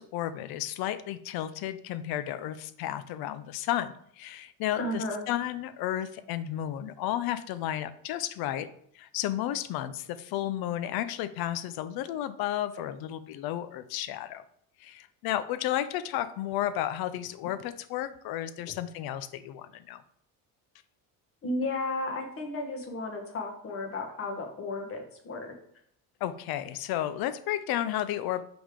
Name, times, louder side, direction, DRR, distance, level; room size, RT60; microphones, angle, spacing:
voice 1, 0.0-8.7 8.9-14.4 14.8-20.0 26.2-28.4, left 12 dB, 70° left, 14 dB, 0.6 m, -32 dB
voice 2, 4.7-5.2 18.7-18.8 21.4-25.5, left 2 dB, 35° left, 3 dB, 1.2 m, -34 dB
5.3 x 4.9 x 3.7 m, 0.66 s
cardioid pair, 150°, 38 cm